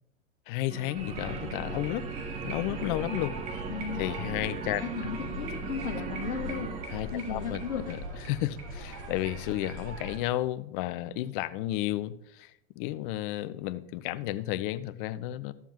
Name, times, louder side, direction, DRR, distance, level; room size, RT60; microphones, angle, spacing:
voice 1, 0.5-2.1 2.4-3.4 4.0-4.8 6.9-7.6 7.9-15.5, left 15 dB, 50° left, 15 dB, 0.6 m, -32 dB
sound 1, 0.7-7.9, right 6 dB, 20° right, 0.6 m, -40 dB
sound 2, 0.9-10.2, equal, 50° right, 2.0 m, -39 dB
voice 2, 3.7-4.0 4.8-6.7 7.1-8.0, left 7 dB, 80° left, -1 dB, 1.2 m, -35 dB
13.5 x 7.1 x 3.0 m, 0.81 s
hypercardioid pair, 95°, 35 cm